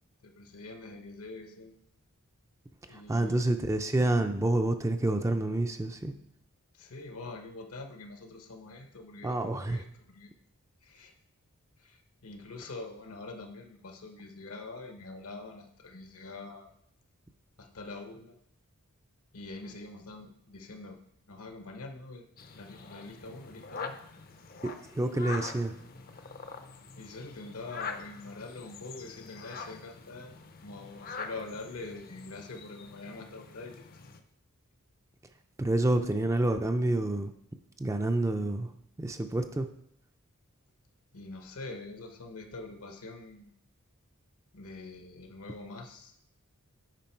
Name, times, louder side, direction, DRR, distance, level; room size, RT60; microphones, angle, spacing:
voice 1, 0.2-1.7 2.9-3.5 6.7-10.3 10.8-11.1 11.8-16.7 17.6-18.4 19.3-21.0 21.3-22.3 22.5-24.0 27.0-30.3 30.6-33.9 41.1-43.5 44.5-46.1, left 3 dB, 75° left, 5 dB, 1.1 m, -44 dB
voice 2, 2.9-6.1 9.2-9.8 24.6-25.7 35.6-37.3 37.8-38.7 39.0-39.7, right 2 dB, 15° right, 6 dB, 0.4 m, -28 dB
sound 1, 22.4-34.2, left 4 dB, 40° left, 0.6 m, -44 dB
9.2 x 5.2 x 4.4 m, 0.73 s
head